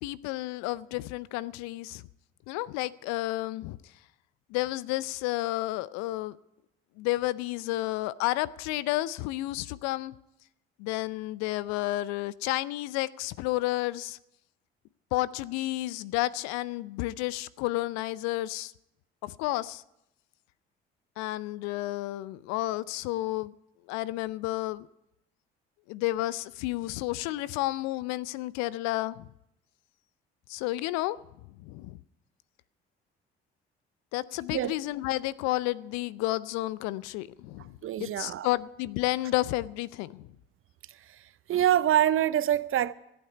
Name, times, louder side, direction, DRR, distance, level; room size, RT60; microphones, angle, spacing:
voice 1, 0.0-2.0 2.5-3.8 4.5-6.4 7.0-10.1 10.8-14.2 15.1-18.7 19.2-19.8 21.2-23.5 23.9-24.9 25.9-29.3 30.5-31.2 31.6-32.0 34.1-40.3, left 17 dB, 65° left, 0.6 m, -31 dB
voice 2, 37.8-38.5 41.5-42.9, right 11 dB, 45° right, 0.7 m, -25 dB
14.5 x 8.7 x 9.6 m
figure-of-eight pair, 50°, 30 cm